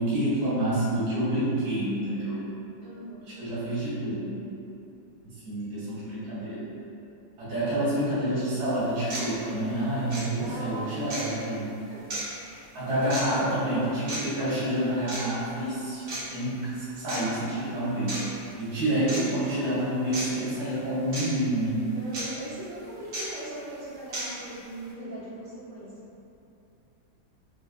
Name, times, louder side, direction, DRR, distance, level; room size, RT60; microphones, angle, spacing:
voice 1, 0.0-2.4 3.4-4.4 5.2-6.7 7.4-11.7 12.7-16.1 16.3-18.2 18.6-21.8, right 1 dB, 80° right, -10 dB, 2.1 m, -28 dB
voice 2, 2.8-3.3 7.4-7.7 10.4-11.5 12.4-12.6 12.9-13.6 21.9-25.9, right 1 dB, 45° right, -10 dB, 1.1 m, -39 dB
sound 1, 8.4-8.5 9.1-9.3 10.1-10.2 11.1-11.3 12.1-12.2 13.1-13.2 14.1-14.2 15.1-15.3 16.1-16.2 17.1-17.2 18.1-18.2 19.1-19.2 20.1-20.3 21.1-21.2 22.1-22.2 23.1-23.2 24.1-24.2, right 2 dB, 65° right, 1.7 m, -33 dB
6.3 x 2.3 x 2.4 m, 2.8 s
omnidirectional pair, 2.1 m